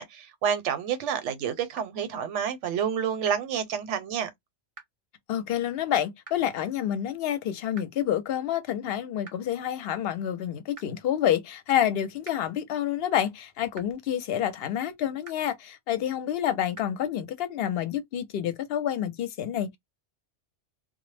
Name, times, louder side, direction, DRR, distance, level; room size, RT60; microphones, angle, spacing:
voice 1, 0.0-4.3, right 8 dB, 80° right, 0.9 m, -29 dB
sound 1, 1.7-1.8 3.2-3.3 4.7-4.8 6.2-6.3 7.7-7.8 9.2-9.3 10.7-10.8 12.2-12.3 13.7-13.8 15.2-15.3 16.7-16.8, right 3 dB, 35° right, 0.6 m, -44 dB
voice 2, 5.3-19.8, left 10 dB, 65° left, 0.7 m, -28 dB
2.0 x 2.0 x 3.2 m
omnidirectional pair, 1.2 m